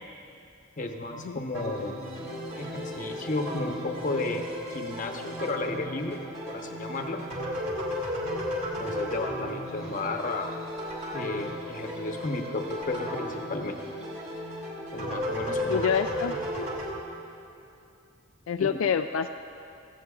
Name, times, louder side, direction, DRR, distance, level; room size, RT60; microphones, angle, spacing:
voice 1, 0.8-2.0 2.6-6.2 6.5-7.2 8.3-8.4 8.8-10.5 11.1-13.8 14.9-15.9 16.3-16.4 18.6-18.7, left 2 dB, 40° left, 3 dB, 0.9 m, -33 dB
sound 1, 1.5-16.9, equal, 35° right, 2.3 m, -34 dB
voice 2, 15.7-16.3 18.5-19.3, left 7 dB, 75° left, 7 dB, 0.3 m, -27 dB
16.5 x 15.5 x 2.4 m, 2.7 s
head